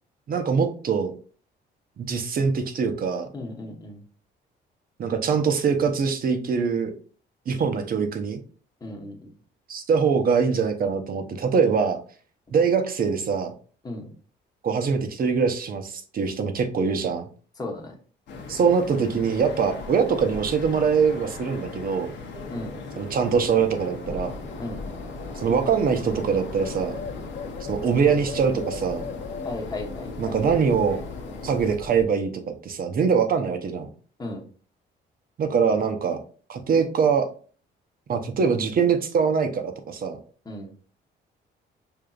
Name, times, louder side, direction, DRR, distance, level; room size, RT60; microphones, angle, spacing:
voice 1, 0.3-1.1 2.0-3.3 5.0-6.9 7.5-8.4 9.7-12.0 12.5-13.5 14.6-17.3 18.5-22.1 23.0-24.3 25.3-27.0 27.6-29.1 30.2-31.0 31.4-32.3 32.6-33.9 35.4-36.2 36.5-37.3 38.1-40.2, right 6 dB, 50° right, 6 dB, 0.7 m, -23 dB
voice 2, 3.3-4.0 8.8-9.3 13.8-14.1 17.6-17.9 22.5-22.7 24.6-24.8 29.4-30.4 34.2-34.4 40.4-40.7, left 2 dB, 20° left, 1 dB, 1.0 m, -35 dB
sound 1, 18.3-31.7, left 3 dB, 70° left, 0.8 m, -38 dB
Bird, 24.3-32.0, left 5 dB, 40° left, 0.5 m, -39 dB
5.1 x 2.7 x 2.3 m, 0.41 s
cardioid pair, 95°, 19 cm